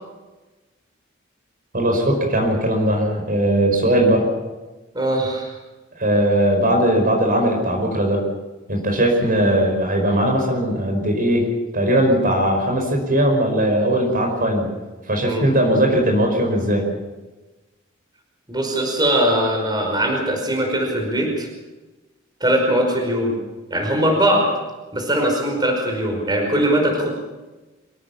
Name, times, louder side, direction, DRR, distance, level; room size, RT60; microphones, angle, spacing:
voice 1, 1.7-4.3 6.0-8.2 8.7-11.5 11.7-14.7 15.1-16.8, right 1 dB, 45° right, 1 dB, 5.2 m, -19 dB
voice 2, 4.9-5.6 15.2-15.5 18.5-21.5 22.4-23.4 23.7-24.5 24.9-27.2, right 1 dB, 20° right, 2 dB, 5.2 m, -20 dB
25.0 x 17.5 x 7.3 m, 1.2 s
head